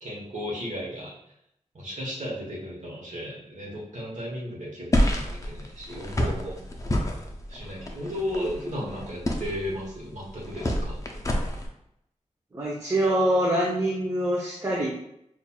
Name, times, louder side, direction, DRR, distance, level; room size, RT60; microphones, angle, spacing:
voice 1, 0.0-1.1 1.7-6.6 7.5-11.1, equal, 70° right, -5 dB, 1.0 m, -35 dB
sound 1, 4.9-11.7, equal, 25° left, 0.5 m, -29 dB
voice 2, 12.5-14.9, right 1 dB, 25° right, -4 dB, 0.7 m, -24 dB
5.6 x 2.4 x 2.3 m, 0.78 s
wide cardioid pair, 100°, 13 cm